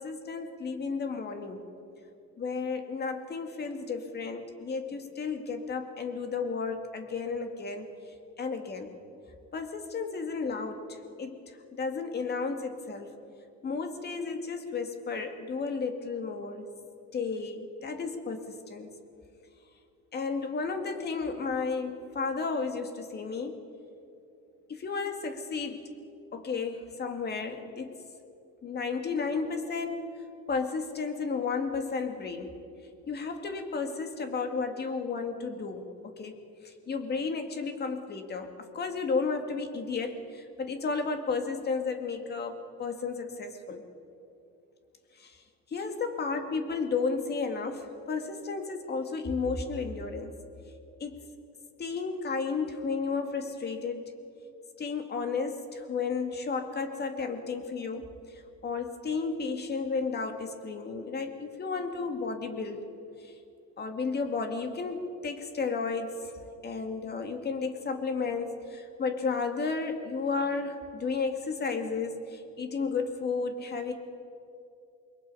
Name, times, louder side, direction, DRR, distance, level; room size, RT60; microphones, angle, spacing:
voice 1, 0.0-1.6 2.4-7.9 8.4-8.9 9.5-11.4 11.7-13.1 13.6-16.7 17.1-18.9 20.1-23.5 24.7-25.8 26.3-27.9 28.6-30.2 30.5-32.5 33.1-36.3 36.6-43.8 45.2-45.4 45.7-50.3 51.0-51.2 51.8-54.1 54.8-58.1 58.3-62.8 63.2-63.3 63.8-66.3 66.6-73.9, left 4 dB, 35° left, 6 dB, 2.1 m, -33 dB
28.0 x 22.0 x 5.5 m, 2.6 s
cardioid pair, 140°, 30 cm